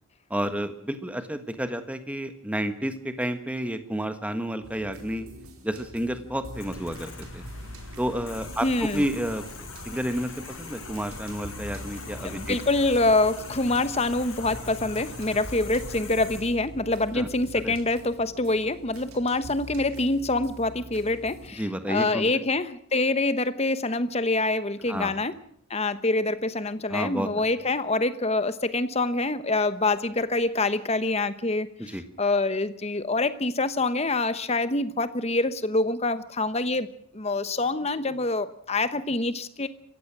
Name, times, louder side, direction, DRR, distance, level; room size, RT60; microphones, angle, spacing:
voice 1, 0.3-5.3 5.6-7.4 8.0-9.4 9.8-10.3 10.6-12.6 17.1-17.3 17.6-17.7 21.6-22.3 24.9-25.2 26.9-27.3 31.8-32.0, equal, 5° right, 8 dB, 1.4 m, -30 dB
sound 1, 4.6-21.5, left 1 dB, 85° right, 4.3 m, -44 dB
sound 2, 6.5-16.4, left 3 dB, 65° left, 6.3 m, -42 dB
voice 2, 8.6-9.0 12.2-25.3 25.7-39.7, left 2 dB, 30° left, 13 dB, 1.0 m, -26 dB
28.0 x 15.5 x 6.1 m, 0.63 s
head